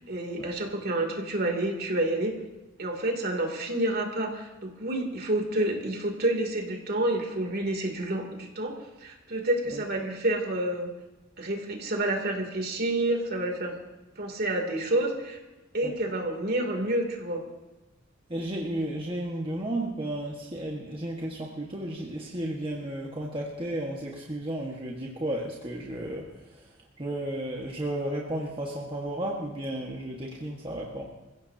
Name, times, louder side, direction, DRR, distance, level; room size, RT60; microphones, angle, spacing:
voice 1, 0.1-2.3 2.8-8.7 9.0-10.9 11.4-13.7 14.2-15.4 15.7-17.4, right 1 dB, 50° right, 2 dB, 3.0 m, -29 dB
voice 2, 18.3-26.3 26.5-26.6 27.0-31.0, right 1 dB, 25° right, -2 dB, 1.6 m, -33 dB
27.0 x 16.0 x 2.9 m, 1.1 s
head